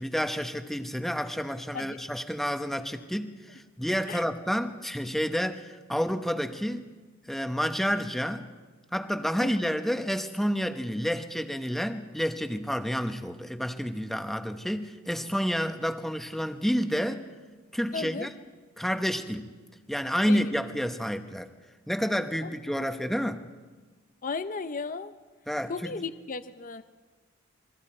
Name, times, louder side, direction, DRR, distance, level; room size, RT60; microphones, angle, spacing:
voice 1, 0.0-6.9 7.3-8.5 8.9-17.3 17.7-18.3 18.8-19.5 19.9-21.5 21.9-23.4 25.5-25.9, equal, ahead, 7 dB, 1.0 m, -29 dB
voice 2, 9.4-9.7 17.9-18.3 20.3-20.4 22.4-22.5 24.2-25.1 25.7-26.8, left 4 dB, 40° left, 11 dB, 0.7 m, -35 dB
26.5 x 22.5 x 4.4 m, 1.3 s
head